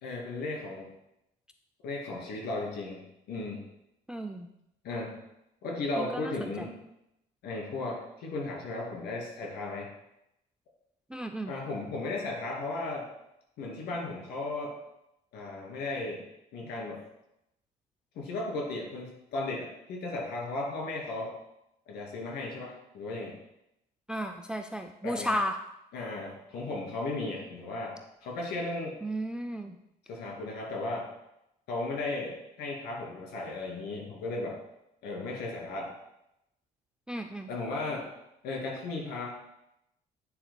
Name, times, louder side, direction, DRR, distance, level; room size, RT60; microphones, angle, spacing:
voice 1, 0.0-0.9 1.8-3.6 4.8-5.2 5.6-6.8 7.4-9.9 11.5-13.1 13.6-14.7 15.3-16.2 16.5-17.0 18.1-21.3 21.9-23.4 25.0-25.3 25.9-29.0 30.1-31.1 31.7-34.6 35.0-35.9 37.5-38.1 38.4-39.3, left 2 dB, 75° left, -2 dB, 2.7 m, -35 dB
voice 2, 4.1-4.5 6.0-6.7 11.1-11.5 24.1-25.6 29.0-29.8 37.1-37.5, equal, 5° right, 6 dB, 0.3 m, -34 dB
8.8 x 7.0 x 2.2 m, 0.84 s
cardioid pair, 110°, 17 cm